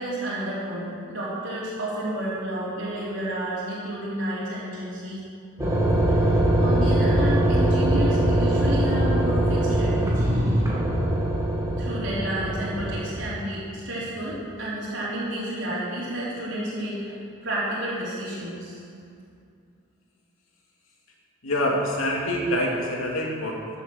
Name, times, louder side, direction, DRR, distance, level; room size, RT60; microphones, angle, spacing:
voice 1, 0.0-5.2 6.1-10.2 11.8-18.8, right 1 dB, 60° right, -9 dB, 3.7 m, -31 dB
sound 1, 5.6-13.1, right 1 dB, 15° right, 2.4 m, -22 dB
voice 2, 21.4-23.7, left 1 dB, 80° left, -2 dB, 2.7 m, -26 dB
14.0 x 8.2 x 7.2 m, 2.4 s
head